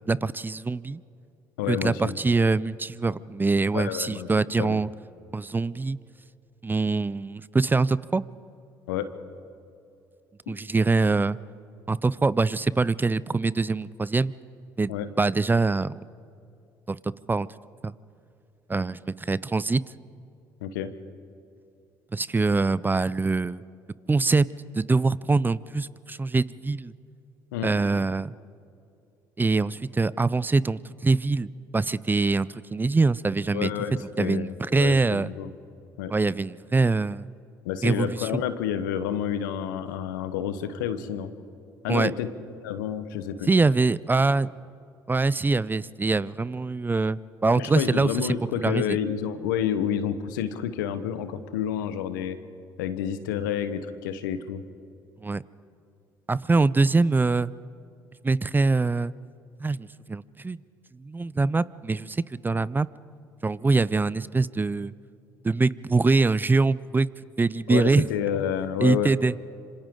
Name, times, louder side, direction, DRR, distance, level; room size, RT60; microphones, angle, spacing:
voice 1, 0.1-1.0 1.7-4.9 5.3-6.0 6.6-8.2 10.5-11.4 11.9-14.3 14.8-16.1 16.9-17.5 17.8-17.9 18.7-19.8 22.1-23.6 24.1-24.5 24.7-26.9 27.6-28.3 29.4-33.7 34.2-35.3 36.1-37.3 37.8-38.4 41.9-42.1 43.5-44.5 45.1-48.3 48.6-49.0 55.2-55.4 56.3-57.5 58.2-59.1 59.6-60.6 61.0-62.9 63.4-64.9 65.4-67.1 67.4-68.1 68.8-69.3, right 3 dB, 20° right, 20 dB, 0.5 m, -24 dB
voice 2, 1.6-2.1 3.7-4.3 4.6-4.8 8.9-9.1 10.5-10.6 14.9-15.1 20.6-20.9 27.5-27.7 33.5-35.5 36.0-36.1 37.6-41.3 41.8-42.3 42.6-43.5 47.6-52.4 52.8-54.6 67.7-69.1, left 9 dB, 85° left, 11 dB, 1.1 m, -29 dB
26.5 x 26.0 x 3.8 m, 2.7 s
hypercardioid pair, 55°, 10 cm